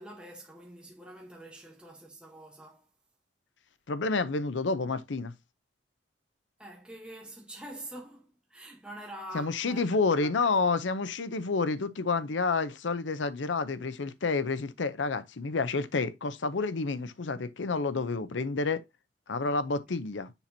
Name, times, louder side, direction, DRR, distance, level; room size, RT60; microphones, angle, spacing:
voice 1, 0.0-2.9 6.6-10.5 19.9-20.0, right 1 dB, 5° right, 1.1 m, -46 dB
voice 2, 3.9-5.3 9.3-18.8 19.3-20.3, left 4 dB, 80° left, 0.6 m, -29 dB
7.0 x 5.9 x 2.7 m
head